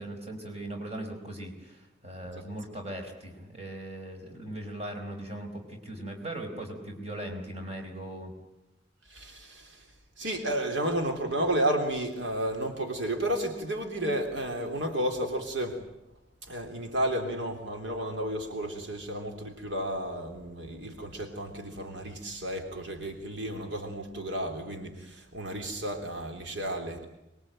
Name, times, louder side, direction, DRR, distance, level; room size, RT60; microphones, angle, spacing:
voice 1, 0.0-8.3, right 1 dB, 35° right, 3 dB, 4.8 m, -39 dB
voice 2, 9.1-9.9 10.2-15.8 16.4-27.1, right 1 dB, 80° right, 4 dB, 3.5 m, -32 dB
25.0 x 22.0 x 9.0 m, 0.91 s
head